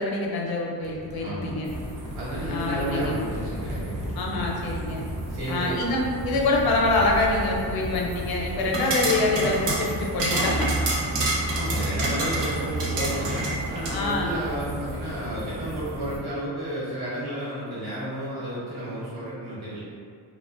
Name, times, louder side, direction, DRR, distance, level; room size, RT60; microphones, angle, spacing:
voice 1, 0.0-1.7 2.5-3.2 4.2-5.0 5.5-10.7 13.9-14.3, left 2 dB, 60° left, -2 dB, 0.6 m, -25 dB
sound 1, 0.8-7.2, equal, 20° right, 0.4 m, -39 dB
voice 2, 1.2-1.6 2.1-3.9 5.3-5.8 11.0-11.1 11.5-19.8, right 1 dB, 60° right, -9 dB, 1.1 m, -32 dB
sound 2, 1.6-16.2, right 1 dB, 45° right, 0.8 m, -34 dB
sound 3, 8.6-14.0, right 2 dB, 90° right, 0.7 m, -28 dB
2.4 x 2.1 x 2.4 m, 2.3 s
cardioid pair, 120°, 42 cm